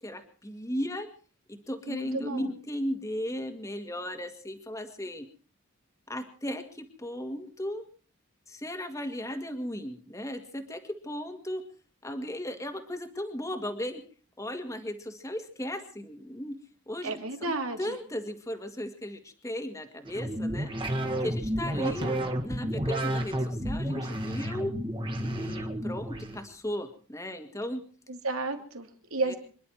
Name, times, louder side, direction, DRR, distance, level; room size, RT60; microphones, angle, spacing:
voice 1, 0.0-1.1 1.5-5.3 6.1-7.8 8.5-11.6 12.0-14.0 14.4-16.6 16.9-17.5 17.8-20.7 21.2-24.7 25.2-27.8 29.2-29.3, equal, 15° left, 6 dB, 1.9 m, -36 dB
voice 2, 1.9-2.5 17.0-18.0 21.8-22.2 28.1-29.4, right 2 dB, 80° right, 5 dB, 2.9 m, -33 dB
sound 1, 20.0-26.4, right 1 dB, 25° right, 2.0 m, -31 dB
27.0 x 11.0 x 4.6 m, 0.41 s
head